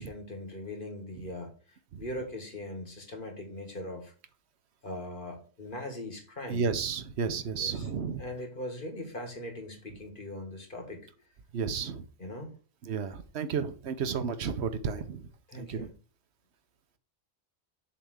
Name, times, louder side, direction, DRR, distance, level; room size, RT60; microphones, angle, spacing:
voice 1, 0.0-4.1 4.8-6.7 7.6-7.9 8.2-11.0 12.2-12.5 15.5-15.9, left 1 dB, 50° left, 4 dB, 2.0 m, -40 dB
voice 2, 6.5-8.2 11.5-12.1 12.8-15.3 15.5-15.9, right 6 dB, 80° right, 10 dB, 1.1 m, -32 dB
7.1 x 3.5 x 6.3 m, 0.38 s
omnidirectional pair, 1.1 m